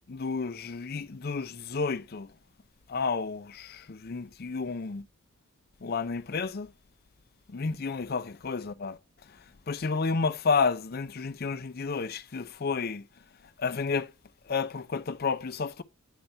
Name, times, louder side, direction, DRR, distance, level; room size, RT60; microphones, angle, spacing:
voice 1, 0.1-2.3 2.9-5.1 5.8-6.7 7.5-9.0 9.3-9.4 9.7-13.1 13.6-14.1 14.5-15.8, left 4 dB, 45° left, 0.5 m, -31 dB
9.1 x 4.2 x 4.4 m
head